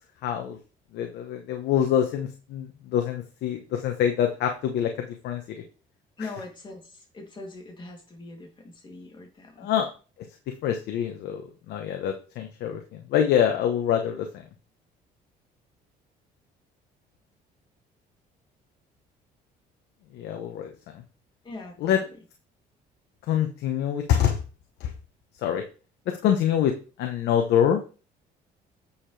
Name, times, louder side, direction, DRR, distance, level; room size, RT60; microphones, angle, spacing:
voice 1, 0.2-0.6 0.9-5.4 9.6-9.9 10.6-14.3 20.1-21.0 21.8-22.0 23.3-24.4 24.8-24.9 25.4-25.6 26.2-26.7 27.0-27.8, left 9 dB, 75° left, 4 dB, 1.1 m, -25 dB
voice 2, 6.2-9.7 21.4-22.0, left 3 dB, 30° left, 1 dB, 2.9 m, -41 dB
8.5 x 6.6 x 3.4 m, 0.35 s
cardioid pair, 110°, 17 cm